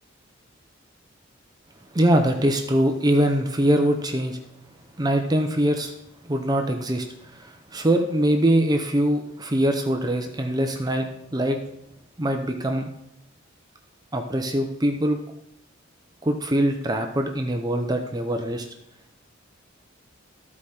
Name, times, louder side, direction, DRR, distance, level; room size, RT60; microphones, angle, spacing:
voice 1, 1.9-4.4 5.0-5.9 6.2-11.6 12.2-12.9 14.1-15.2 16.2-18.7, right 1 dB, 20° right, 4 dB, 0.7 m, -23 dB
13.5 x 4.8 x 4.3 m, 0.80 s
head